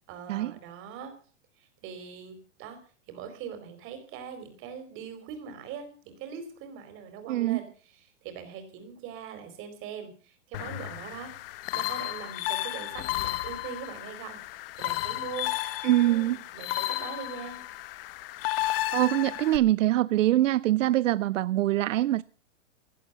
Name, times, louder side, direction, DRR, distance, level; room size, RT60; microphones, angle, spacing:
voice 1, 0.1-1.1 1.6-2.8 3.1-7.6 7.9-11.3 11.7-14.4 14.8-15.5 16.0-17.6, right 7 dB, 35° right, 4.5 m, -41 dB
voice 2, 7.3-7.6 15.8-16.4 18.9-22.2, right 14 dB, 80° right, 0.6 m, -24 dB
sound 1, 10.5-19.6, left 16 dB, 50° left, 0.9 m, -33 dB
16.5 x 11.0 x 6.8 m
hypercardioid pair, 150°, 38 cm